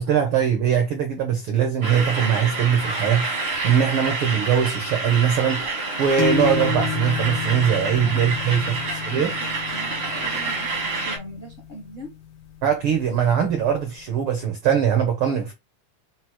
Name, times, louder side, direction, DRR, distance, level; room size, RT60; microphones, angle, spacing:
voice 1, 0.0-5.7 6.0-9.3 12.6-15.5, right 8 dB, 80° right, 1.2 m, -21 dB
sound 1, 1.8-11.2, right 3 dB, 55° right, 0.6 m, -28 dB
sound 2, 6.2-13.7, left 6 dB, 75° left, 1.3 m, -31 dB
voice 2, 8.9-9.3 9.7-10.7 11.0-12.1, right 1 dB, 55° left, 0.8 m, -39 dB
6.0 x 2.1 x 4.1 m
omnidirectional pair, 3.5 m